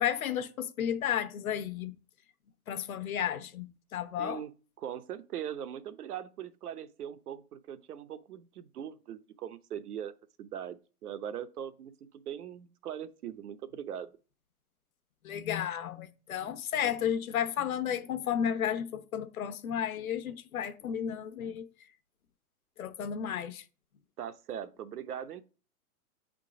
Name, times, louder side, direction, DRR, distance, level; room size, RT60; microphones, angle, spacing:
voice 1, 0.0-1.9 2.7-3.7 3.9-4.4 15.2-21.7 22.8-23.6, left 9 dB, 65° left, 0.9 m, -32 dB
voice 2, 4.2-4.5 4.8-10.1 10.4-11.9 12.3-14.1 24.2-25.4, right 9 dB, 75° right, 0.8 m, -40 dB
7.5 x 3.8 x 4.9 m
hypercardioid pair, 165°, 46 cm